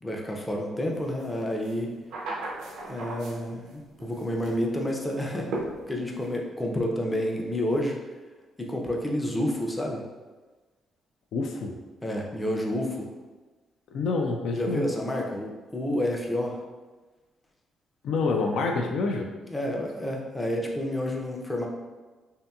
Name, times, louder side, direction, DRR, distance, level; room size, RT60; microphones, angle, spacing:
voice 1, 0.0-1.9 2.9-5.5 5.9-8.0 8.6-10.1 12.0-13.1 14.5-16.6 19.5-21.7, left 1 dB, 15° left, 0 dB, 0.4 m, -29 dB
sound 1, 1.2-1.3 1.6-3.7 4.0-4.6 5.5-6.3, right 2 dB, 85° right, 0.4 m, -36 dB
voice 2, 11.3-11.7 13.9-14.9 18.0-19.3, left 4 dB, 75° left, 2 dB, 0.3 m, -27 dB
2.7 x 2.7 x 2.2 m, 1.3 s
cardioid pair, 90°, 0 cm